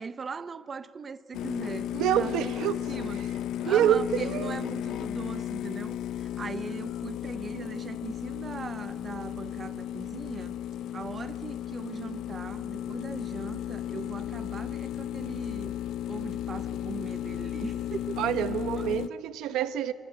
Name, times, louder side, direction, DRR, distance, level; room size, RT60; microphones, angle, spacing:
voice 1, 0.0-1.9 2.2-3.4 3.7-10.6 10.9-15.7 16.1-18.2 18.8-19.0, right 5 dB, 25° right, 0.6 m, -40 dB
sound 1, 1.3-19.1, left 11 dB, 65° left, 0.5 m, -34 dB
voice 2, 1.9-2.8 3.2-3.3 3.6-4.6 18.2-19.9, right 10 dB, 80° right, 0.8 m, -27 dB
26.5 x 13.0 x 9.7 m
cardioid pair, 160°, 0 cm